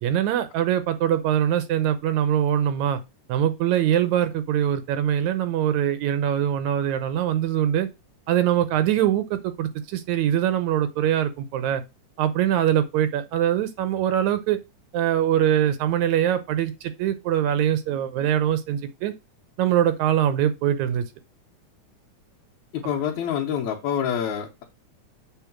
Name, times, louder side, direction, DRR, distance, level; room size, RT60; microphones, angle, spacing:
voice 1, 0.0-3.0 3.3-7.9 8.3-11.8 12.2-14.6 14.9-19.1 19.6-21.1, right 10 dB, 80° right, 2.1 m, -23 dB
voice 2, 22.7-24.6, left 8 dB, 80° left, 2.3 m, -27 dB
7.5 x 3.9 x 5.9 m
omnidirectional pair, 3.4 m